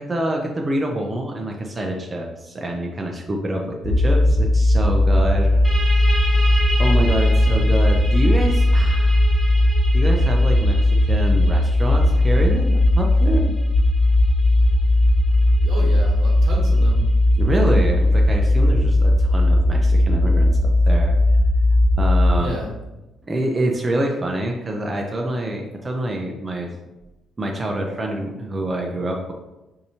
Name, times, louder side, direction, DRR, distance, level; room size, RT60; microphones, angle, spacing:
voice 1, 0.0-5.6 6.8-9.2 9.9-13.5 17.4-21.2 22.0-22.6 23.3-26.7 27.4-29.3, right 1 dB, 25° right, 0 dB, 0.5 m, -26 dB
sound 1, 3.8-22.4, left 1 dB, 15° left, 1.4 m, -17 dB
sound 2, 5.6-17.0, right 1 dB, ahead, 1.3 m, -34 dB
voice 2, 15.6-17.1 22.3-22.7, right 1 dB, 75° right, -2 dB, 1.1 m, -32 dB
4.6 x 2.7 x 2.8 m, 1.0 s
cardioid pair, 90°, 0 cm